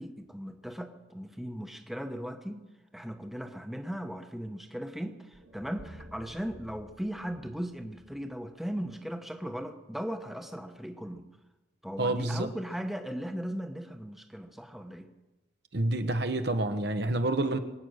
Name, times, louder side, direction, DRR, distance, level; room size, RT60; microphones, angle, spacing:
voice 1, 0.0-2.6 2.9-11.3 11.8-15.1, equal, ahead, 1.0 m, -37 dB
sound 1, 5.3-9.5, equal, 85° right, 2.1 m, -53 dB
voice 2, 12.0-12.5 15.7-17.6, right 2 dB, 60° right, 1.2 m, -28 dB
24.0 x 9.3 x 6.5 m
head